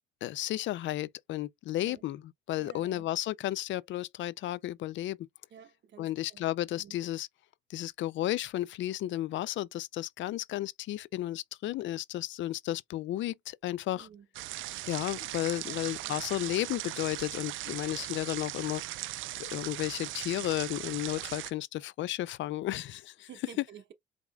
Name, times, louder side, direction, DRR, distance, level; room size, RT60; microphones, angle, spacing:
voice 1, 0.2-5.3 6.0-7.3 7.7-14.1 14.9-18.8 19.4-23.3, left 14 dB, 70° left, 0.4 m, -33 dB
voice 2, 2.6-3.1 5.5-6.5 6.8-7.0 14.0-14.3 15.6-16.2 23.2-23.9, right 8 dB, 65° right, 0.9 m, -52 dB
sound 1, 14.3-21.5, right 16 dB, 80° right, 0.4 m, -39 dB
4.9 x 3.6 x 2.3 m
cardioid pair, 90°, 20 cm